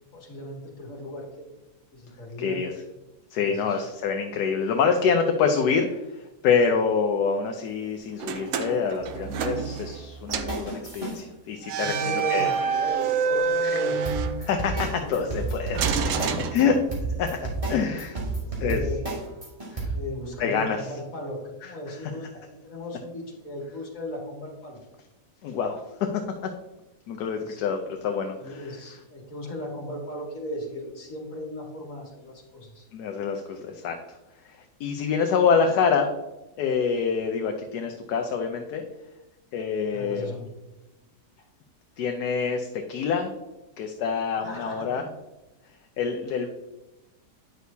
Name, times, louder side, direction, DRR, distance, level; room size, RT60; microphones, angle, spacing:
voice 1, 0.1-1.5 1.9-2.6 3.4-3.8 11.7-14.0 14.9-15.4 16.1-16.5 18.4-19.0 19.9-24.8 27.3-27.6 28.4-32.8 39.9-40.5 44.4-45.0, left 1 dB, 50° left, -1 dB, 2.2 m, -36 dB
voice 2, 2.4-2.7 3.3-12.5 13.6-13.8 14.4-16.8 17.2-17.4 17.7-18.2 18.6-18.8 19.7-19.9 20.4-20.9 21.6-22.0 25.4-25.8 26.4-26.5 27.1-28.7 32.9-34.0 34.4-36.1 36.6-38.8 39.5-40.3 42.0-43.3 43.8-45.1 46.0-46.5, left 6 dB, 75° left, 4 dB, 1.2 m, -26 dB
sound 1, 8.2-10.0 10.3-10.6 11.6-14.9 15.7-17.2, right 6 dB, 70° right, 1.0 m, -27 dB
sound 2, 10.3-11.2 14.1-16.6 16.9-19.8, right 3 dB, 20° right, 1.8 m, -31 dB
9.3 x 6.3 x 2.7 m, 1.0 s
omnidirectional pair, 1.8 m